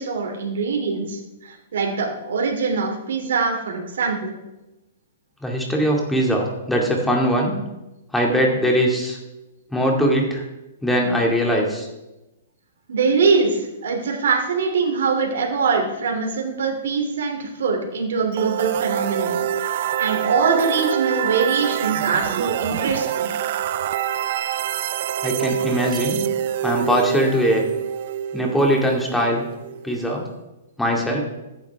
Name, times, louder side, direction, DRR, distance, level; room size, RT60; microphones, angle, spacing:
voice 1, 0.0-4.3 12.9-19.4 20.0-23.3, right 5 dB, 75° right, 1 dB, 2.9 m, -23 dB
voice 2, 5.4-7.6 8.1-9.2 9.7-10.4 10.8-11.9 25.2-26.2 26.6-27.6 28.3-29.4 29.8-30.2 30.8-31.2, equal, 5° left, -1 dB, 2.2 m, -21 dB
sound 1, 18.3-30.2, right 10 dB, 55° right, 0.5 m, -26 dB
14.0 x 9.4 x 3.5 m, 1.0 s
hypercardioid pair, 145°, 0 cm